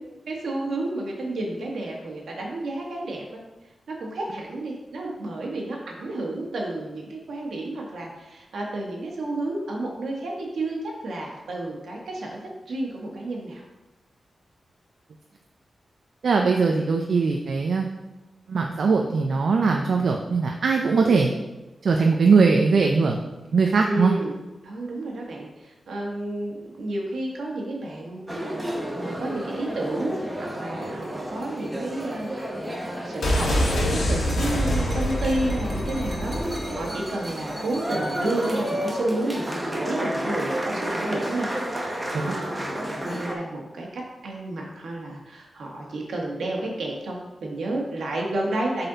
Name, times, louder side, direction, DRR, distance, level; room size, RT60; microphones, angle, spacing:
voice 1, 0.3-3.4 3.9-13.6 21.0-21.2 23.8-24.4 24.6-48.9, right 2 dB, 80° right, -1 dB, 1.5 m, -31 dB
voice 2, 16.2-17.8 18.5-21.3 21.8-23.2 23.5-24.1 42.1-42.4, right 4 dB, 60° right, 2 dB, 0.5 m, -20 dB
sound 1, 28.3-43.4, equal, 10° right, 0.8 m, -31 dB
sound 2, 33.2-37.0 37.2-37.3, equal, 75° left, 1.4 m, -25 dB
7.7 x 4.2 x 4.0 m, 1.1 s
wide cardioid pair, 180°, 0 cm